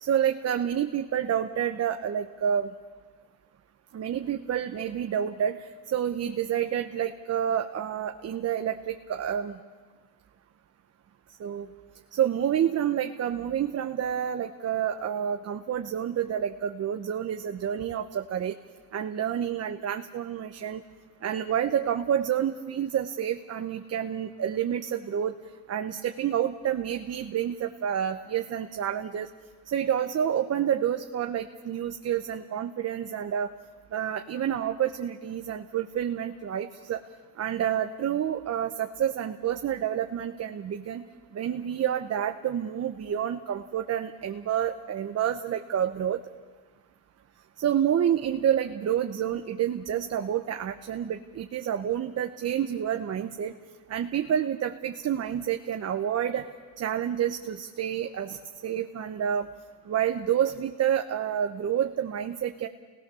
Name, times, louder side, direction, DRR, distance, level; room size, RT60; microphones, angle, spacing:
voice 1, 0.0-2.7 3.9-9.6 11.4-11.7 12.1-18.6 18.9-20.8 21.2-25.3 25.7-29.3 29.7-33.5 33.9-37.0 37.4-41.0 41.3-46.2 47.6-53.5 53.9-56.5 56.8-59.5 59.9-62.7, right 9 dB, 40° right, 6 dB, 1.0 m, -29 dB
28.0 x 18.5 x 7.0 m, 1.5 s
cardioid pair, 105°, 40 cm